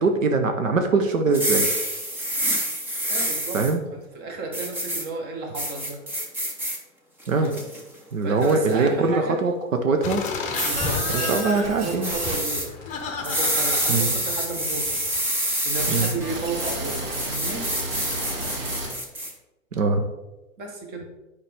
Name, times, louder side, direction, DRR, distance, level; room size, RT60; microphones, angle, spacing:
voice 1, 0.0-1.7 3.5-3.8 7.3-7.5 8.1-10.3 11.1-12.1 13.9-14.1 15.9-16.1 19.7-20.1, right 3 dB, 70° right, 5 dB, 1.0 m, -22 dB
sound 1, 1.3-3.7 4.5-5.0 5.5-6.8 7.2-7.8 8.4-8.7 10.5-11.4 12.0-12.7 13.2-16.1 16.6-19.3, right 1 dB, 5° right, 0.4 m, -27 dB
voice 2, 3.1-3.6 3.9-6.0 7.3-7.6 8.2-9.4 10.7-12.7 13.2-14.9 15.6-17.7 20.6-21.1, right 3 dB, 25° right, 2 dB, 1.3 m, -33 dB
sound 2, 10.0-15.2, left 5 dB, 20° left, 0.9 m, -33 dB
sound 3, 10.5-18.9, right 1 dB, 45° right, 2.5 m, -33 dB
8.8 x 5.0 x 3.6 m, 1.0 s
figure-of-eight pair, 115°, 41 cm